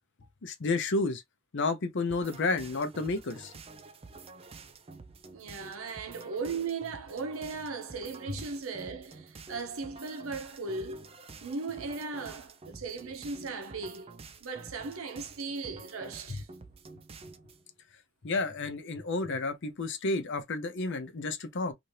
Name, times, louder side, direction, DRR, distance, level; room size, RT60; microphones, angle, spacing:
voice 1, 0.4-1.2 1.5-3.5 18.2-21.7, left 3 dB, 60° left, 0.6 m, -31 dB
sound 1, 2.1-17.6, right 4 dB, 30° right, 0.4 m, -50 dB
voice 2, 5.3-11.1 11.4-16.5, right 4 dB, 75° right, 0.7 m, -37 dB
2.8 x 2.6 x 3.1 m
head